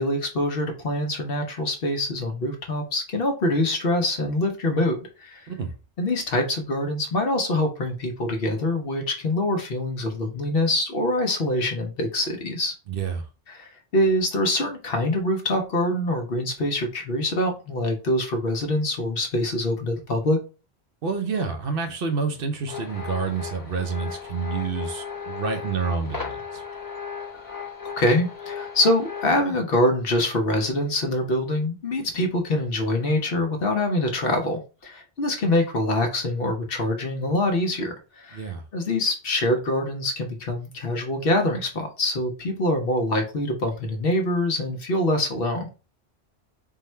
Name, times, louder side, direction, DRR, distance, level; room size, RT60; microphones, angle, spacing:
voice 1, 0.0-5.5 6.0-12.7 13.5-20.4 27.3-27.6 28.0-45.7, left 1 dB, 60° left, 1.0 m, -25 dB
voice 2, 12.9-13.3 21.0-26.6 38.3-38.6, right 5 dB, 60° right, 0.8 m, -28 dB
sound 1, 22.7-29.4, left 6 dB, 20° left, 0.8 m, -36 dB
3.6 x 2.2 x 4.3 m
omnidirectional pair, 1.1 m